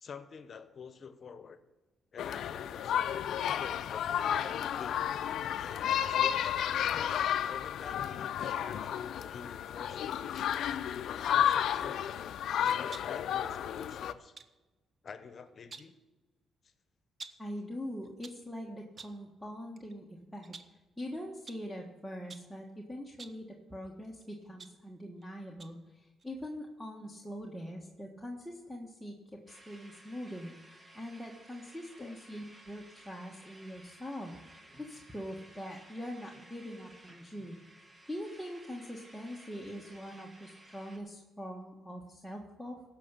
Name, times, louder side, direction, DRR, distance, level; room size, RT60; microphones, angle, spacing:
voice 1, 0.0-1.6 2.1-3.1 3.4-4.4 4.8-5.1 6.1-10.6 11.3-12.3 12.6-14.4 15.0-15.9 32.0-32.2, left 6 dB, 50° left, 11 dB, 1.0 m, -47 dB
sound 1, 2.2-14.1, left 10 dB, 75° left, 0.5 m, -32 dB
sound 2, 11.3-11.6 12.6-13.2 14.4-14.6 15.5-16.0 17.2-17.5 18.0-18.5 19.0-19.3 19.8-19.9 20.4-20.8 21.5-21.7 22.3-22.6 23.1-23.5 24.2-25.2 25.6-25.9 26.2-26.3, right 4 dB, 40° right, 0.7 m, -51 dB
voice 2, 17.4-20.5 21.0-29.1 29.5-37.6 38.1-42.8, equal, ahead, -1 dB, 1.5 m, -43 dB
sound 3, 29.5-41.0, right 1 dB, 20° right, 1.6 m, -56 dB
16.0 x 6.0 x 6.8 m, 1.2 s
cardioid pair, 90°, 0 cm